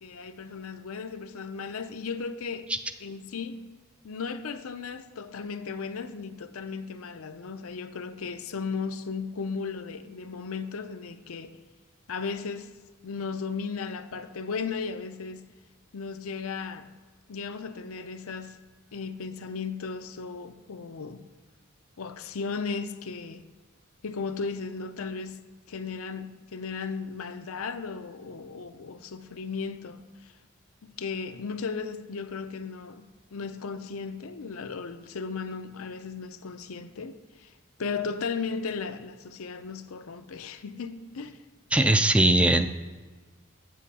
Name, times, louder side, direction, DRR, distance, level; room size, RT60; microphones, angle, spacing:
voice 1, 0.0-2.7 3.0-3.7 4.0-11.6 12.1-12.7 13.0-15.5 15.9-16.9 17.3-18.6 18.9-21.2 22.0-23.5 24.0-25.4 25.7-30.3 30.8-33.0 33.3-37.5 37.8-41.4, left 5 dB, 80° left, 0.6 m, -36 dB
voice 2, 41.7-42.7, right 1 dB, 5° right, 0.3 m, -20 dB
8.3 x 7.5 x 4.1 m
head